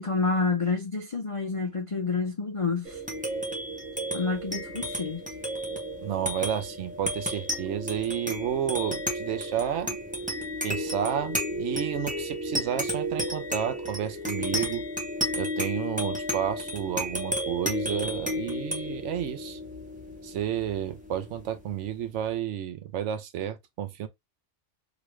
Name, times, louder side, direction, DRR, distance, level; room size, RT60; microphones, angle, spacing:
voice 1, 0.0-3.0 4.1-5.2, left 4 dB, 50° left, 0.4 m, -28 dB
sound 1, 2.8-21.7, equal, 10° right, 0.6 m, -32 dB
voice 2, 6.0-10.0 10.6-14.9 15.4-19.6 20.2-24.1, right 10 dB, 75° right, 0.9 m, -31 dB
3.0 x 2.5 x 3.0 m
omnidirectional pair, 1.3 m